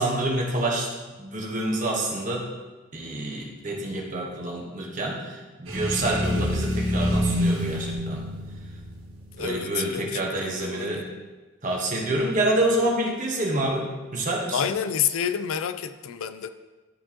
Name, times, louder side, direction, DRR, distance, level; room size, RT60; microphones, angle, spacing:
voice 1, 0.0-2.5 2.9-8.2 9.4-11.1 11.6-14.6, right 1 dB, 40° right, -1 dB, 1.2 m, -27 dB
sound 1, 5.7-9.6, left 1 dB, 90° right, 1.6 m, -27 dB
sound 2, 6.2-8.0 8.9-9.0 9.4-9.5, equal, 20° left, 1.6 m, -40 dB
voice 2, 9.4-11.0 14.5-16.5, left 8 dB, 85° left, 11 dB, 0.4 m, -29 dB
11.5 x 4.4 x 2.9 m, 1.2 s
head